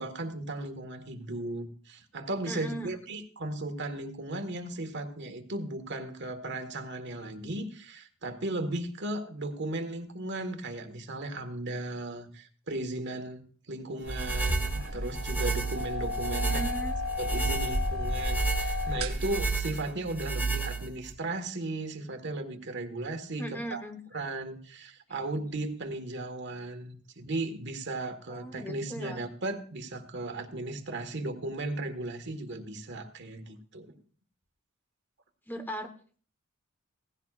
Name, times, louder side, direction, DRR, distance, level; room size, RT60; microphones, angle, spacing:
voice 1, 0.0-16.6 17.2-23.8 24.1-33.9, right 2 dB, 60° right, 7 dB, 1.5 m, -36 dB
voice 2, 2.5-2.9 16.4-16.9 23.4-24.0 28.3-29.2 35.5-35.9, equal, 10° left, 7 dB, 1.2 m, -38 dB
sound 1, 14.0-19.5, left 1 dB, 85° right, 1.8 m, -32 dB
sound 2, 14.1-21.1, right 4 dB, 10° right, 1.6 m, -31 dB
18.5 x 15.5 x 2.5 m, 0.43 s
head